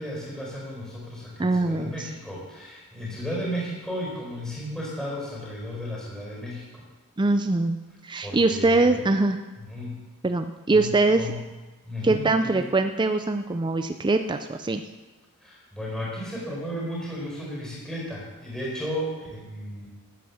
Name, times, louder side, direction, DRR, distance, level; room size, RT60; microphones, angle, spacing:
voice 1, 0.0-6.8 8.2-9.0 9.6-10.0 10.7-10.9 11.2-11.4 11.8-12.6 15.4-19.9, equal, 5° left, -4 dB, 4.4 m, -34 dB
voice 2, 1.4-2.1 7.2-7.8 8.0-9.4 10.2-11.3 12.0-14.8, right 2 dB, 20° right, 7 dB, 0.5 m, -23 dB
13.5 x 9.2 x 7.1 m, 1.2 s
head